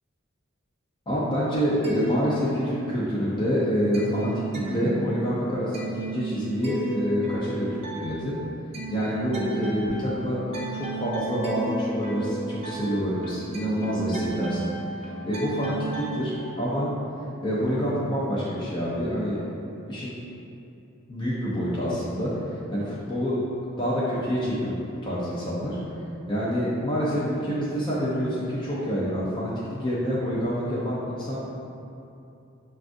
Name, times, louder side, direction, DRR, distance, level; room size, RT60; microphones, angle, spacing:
voice 1, 1.1-4.3 4.7-8.3 8.9-10.4 10.7-14.7 15.3-16.9 17.4-19.4 19.9-20.2 21.1-23.4 23.8-25.8 26.3-31.4, equal, 25° left, -8 dB, 0.5 m, -27 dB
sound 1, 1.8-3.1 3.4-16.2, right 3 dB, 30° right, 0.6 m, -34 dB
6.1 x 2.3 x 2.5 m, 2.7 s
head